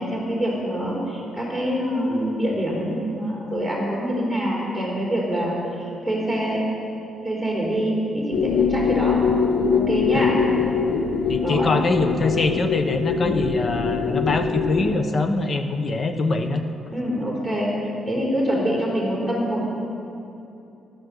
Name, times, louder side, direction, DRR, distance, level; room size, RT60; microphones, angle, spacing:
voice 1, 0.0-6.6 7.2-9.2 9.7-10.4 11.4-11.7 13.2-13.4 16.9-17.7 18.1-19.7, equal, 5° left, -4 dB, 4.1 m, -25 dB
sound 1, 8.3-15.0, left 6 dB, 55° left, 0.8 m, -23 dB
voice 2, 11.3-16.6, left 3 dB, 30° left, 7 dB, 0.9 m, -23 dB
15.0 x 12.0 x 6.6 m, 2.8 s
cardioid pair, 170°, 0 cm